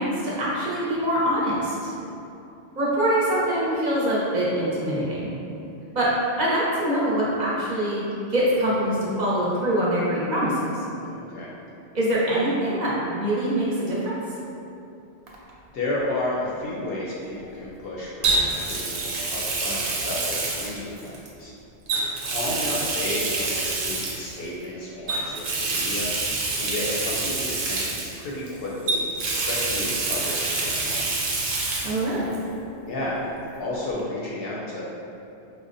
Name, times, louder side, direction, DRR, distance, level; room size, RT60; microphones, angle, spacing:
voice 1, 0.0-1.9 2.8-5.3 5.9-8.0 8.3-10.6 11.9-14.2 31.8-32.3, right 1 dB, 45° right, -7 dB, 0.7 m, -24 dB
voice 2, 11.0-11.5 15.7-21.5 22.2-31.1 32.8-33.2 33.6-34.8, left 1 dB, 65° left, -6 dB, 0.7 m, -32 dB
Water tap faucet, 15.3-15.5 18.2-21.3 21.9-24.3 25.1-28.5 28.9-32.0 32.3-32.4 34.0-34.1, right 3 dB, 85° right, 0.9 m, -27 dB
4.9 x 2.1 x 2.5 m, 2.8 s
omnidirectional pair, 1.2 m